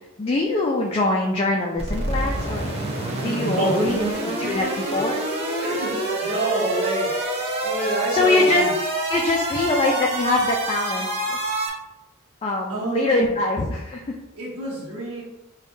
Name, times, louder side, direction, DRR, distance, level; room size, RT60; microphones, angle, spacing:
voice 1, 0.2-5.2 8.1-8.6 9.1-11.4 12.4-14.0, left 2 dB, 25° left, -1 dB, 0.3 m, -23 dB
sound 1, 1.8-11.7, right 1 dB, 25° right, 0.7 m, -27 dB
voice 2, 3.4-3.9 5.6-7.1 7.6-8.7 12.7-13.3 14.3-15.2, right 1 dB, 80° right, -7 dB, 0.9 m, -27 dB
5.2 x 2.3 x 2.6 m, 0.97 s
head